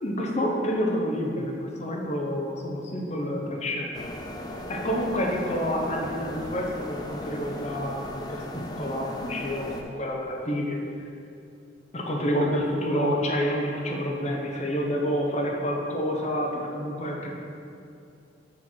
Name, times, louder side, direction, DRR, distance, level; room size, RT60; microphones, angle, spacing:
voice 1, 0.0-4.0 4.7-10.8 11.9-17.3, equal, 35° left, 0 dB, 0.9 m, -28 dB
sound 1, 3.9-9.8, left 1 dB, 20° left, 0.5 m, -37 dB
6.2 x 4.5 x 6.3 m, 2.5 s
head